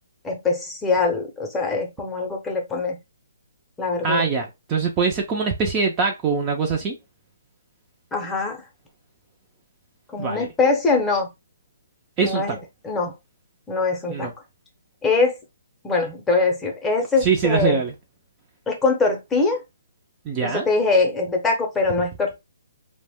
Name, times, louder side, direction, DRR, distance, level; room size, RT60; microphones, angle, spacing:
voice 1, 0.2-3.0 3.8-4.3 8.1-8.6 10.1-11.3 12.2-12.6 12.8-13.1 13.7-14.3 15.0-15.4 15.8-17.8 18.7-19.6 20.4-22.4, left 3 dB, 10° left, 0.7 m, -22 dB
voice 2, 4.0-7.0 10.2-10.5 12.2-12.6 14.1-14.3 17.2-17.9 20.3-20.7, right 5 dB, 25° right, 0.4 m, -23 dB
2.4 x 2.1 x 3.4 m
hypercardioid pair, 150°, 0 cm